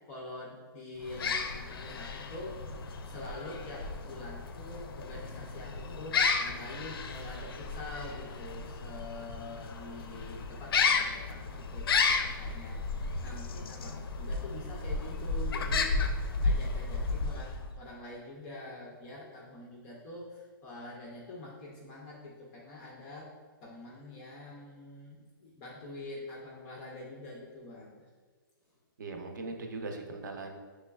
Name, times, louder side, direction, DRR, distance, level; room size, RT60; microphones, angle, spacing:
voice 1, 0.1-2.6 3.0-15.9 16.4-23.3 23.6-28.0, left 2 dB, 10° left, -3 dB, 0.3 m, -45 dB
sound 1, 1.0-17.8, left 4 dB, 90° left, 0.4 m, -33 dB
voice 2, 29.0-30.6, right 3 dB, 55° right, 3 dB, 0.6 m, -39 dB
6.0 x 3.2 x 2.2 m, 1.5 s
hypercardioid pair, 175°, 12 cm